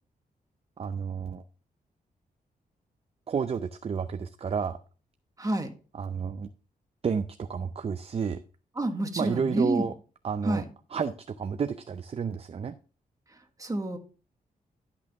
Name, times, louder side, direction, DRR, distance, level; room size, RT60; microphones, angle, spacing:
voice 1, 0.8-1.4 3.3-4.8 6.0-6.5 7.0-8.4 9.2-9.9 10.2-10.6 10.9-12.7, right 6 dB, 40° right, 9 dB, 0.5 m, -31 dB
voice 2, 5.4-5.7 8.8-9.9 10.4-10.6 13.6-14.0, right 1 dB, 20° right, 5 dB, 1.5 m, -28 dB
11.5 x 6.1 x 3.4 m, 0.37 s
cardioid pair, 110°, 16 cm